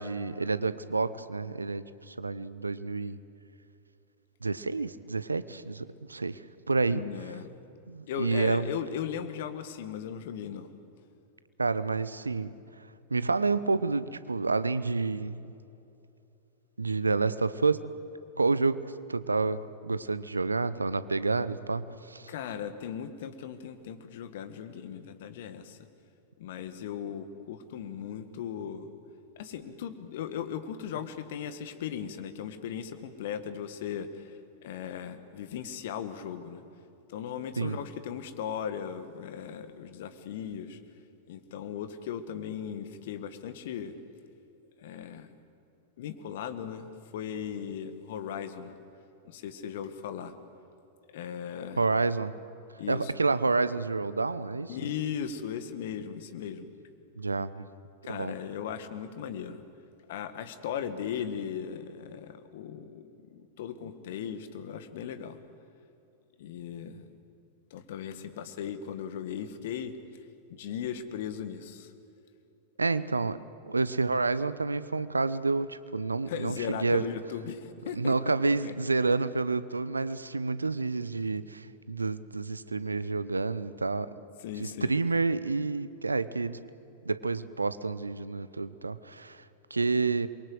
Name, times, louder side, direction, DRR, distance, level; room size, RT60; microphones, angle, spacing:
voice 1, 0.0-3.2 4.4-6.4 6.7-7.1 7.9-8.7 11.6-12.5 13.1-15.5 16.8-17.8 18.4-18.8 19.1-22.3 37.6-37.8 51.8-52.3 52.9-54.8 57.2-57.6 58.1-58.4 72.8-73.4 73.7-77.1 77.9-84.1 84.6-86.6 87.0-89.4 89.7-90.3, right 3 dB, 80° right, 15 dB, 0.8 m, -29 dB
voice 2, 6.9-7.5 8.1-10.7 22.3-25.8 26.4-28.9 29.4-34.3 34.6-36.6 37.1-40.8 41.3-44.0 44.8-45.3 46.0-48.7 49.3-50.3 51.1-51.8 52.8-53.1 54.7-56.7 58.0-59.6 60.1-63.0 63.3-65.4 66.4-67.0 67.7-69.9 70.5-71.9 76.3-78.1 78.4-78.7 84.4-84.9, left 8 dB, 55° left, 11 dB, 1.7 m, -37 dB
28.0 x 23.0 x 8.0 m, 2.8 s
figure-of-eight pair, 90°, 0 cm